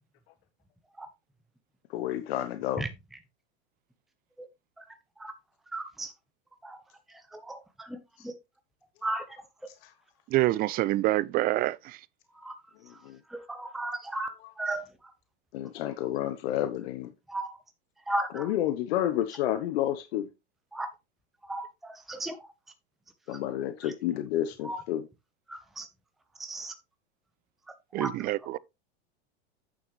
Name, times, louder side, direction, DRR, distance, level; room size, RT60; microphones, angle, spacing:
voice 1, 1.9-2.9 9.8-9.9 12.8-13.2 14.4-14.5 15.5-17.1 18.3-20.3 23.3-25.1, left 12 dB, 65° left, 1.0 m, -30 dB
voice 2, 5.7-6.1 6.6-6.8 7.3-8.0 9.0-9.3 12.4-12.5 13.3-14.8 17.3-17.5 18.1-18.5 20.7-20.9 21.5-22.4 24.6-24.8 25.5-25.9 26.4-26.7 27.9-28.1, right 2 dB, ahead, 1.0 m, -34 dB
voice 3, 10.3-12.0 27.9-28.6, right 17 dB, 30° right, 0.4 m, -26 dB
9.0 x 6.8 x 3.2 m
hypercardioid pair, 105°, 34 cm